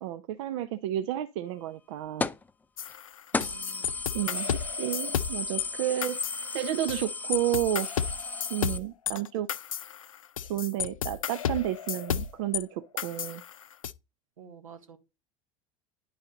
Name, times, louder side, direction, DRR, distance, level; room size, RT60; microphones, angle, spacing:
voice 1, 0.0-2.3 4.1-7.9 8.5-9.5 10.5-13.4, right 13 dB, 65° right, 0.6 m, -31 dB
sound 1, 2.2-2.5 2.9-3.0 3.3-8.8, left 3 dB, 10° left, 0.4 m, -34 dB
sound 2, 2.8-5.7 6.0-7.0 7.3-12.6 13.0-13.9, left 9 dB, 85° left, 0.4 m, -33 dB
voice 2, 3.3-3.9 4.3-4.4 14.4-15.0, right 8 dB, 80° right, 1.3 m, -49 dB
9.9 x 4.1 x 3.8 m
hypercardioid pair, 80°, 17 cm